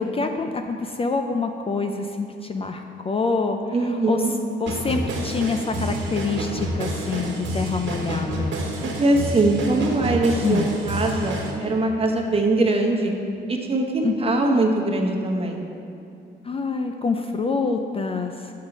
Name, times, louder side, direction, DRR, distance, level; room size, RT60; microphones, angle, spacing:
voice 1, 0.0-4.2 4.6-8.6 10.4-10.7 14.0-14.1 16.4-18.5, left 4 dB, 30° left, 5 dB, 0.4 m, -26 dB
voice 2, 3.7-4.3 8.8-13.1 13.5-15.6, right 2 dB, 30° right, 1 dB, 1.1 m, -22 dB
sound 1, 4.7-11.5, right 1 dB, 70° right, 1.4 m, -29 dB
6.5 x 5.7 x 6.0 m, 2.7 s
cardioid pair, 90°, 20 cm